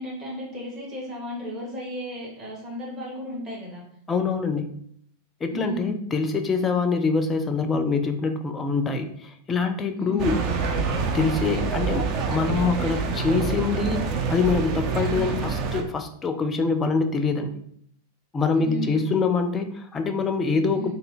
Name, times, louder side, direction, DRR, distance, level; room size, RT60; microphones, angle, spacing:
voice 1, 0.0-3.8 5.5-5.9 9.9-10.4 15.1-15.4 18.5-19.1 20.7-20.9, left 1 dB, 25° right, -4 dB, 1.5 m, -34 dB
voice 2, 4.1-4.8 5.4-17.5 18.3-20.9, left 4 dB, 20° left, 8 dB, 0.4 m, -25 dB
sound 1, 10.2-15.8, right 5 dB, 45° right, 0.5 m, -26 dB
3.2 x 2.2 x 3.7 m, 0.67 s
hypercardioid pair, 95°, 0 cm